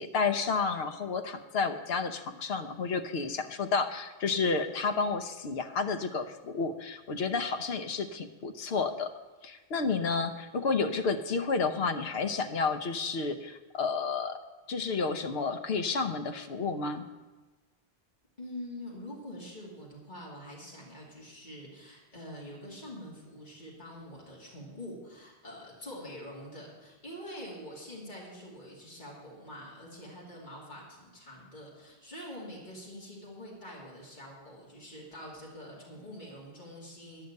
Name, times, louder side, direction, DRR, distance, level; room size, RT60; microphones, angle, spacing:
voice 1, 0.0-9.1 9.4-14.4 14.7-17.0, left 4 dB, 65° left, 7 dB, 1.0 m, -31 dB
voice 2, 18.4-37.2, equal, 45° left, -4 dB, 2.8 m, -45 dB
11.5 x 6.5 x 8.1 m, 1.2 s
omnidirectional pair, 1.1 m